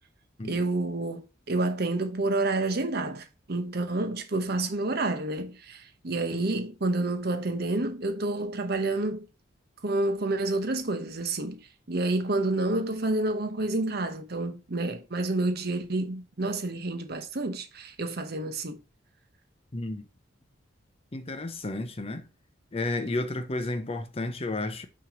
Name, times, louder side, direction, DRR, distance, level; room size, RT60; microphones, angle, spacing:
voice 1, 0.4-9.3 9.8-11.6 11.9-18.8, right 2 dB, 55° right, 0.9 m, -29 dB
voice 2, 19.7-20.0 21.1-22.2 22.7-24.9, left 2 dB, 30° left, 0.6 m, -32 dB
6.0 x 3.0 x 5.1 m
head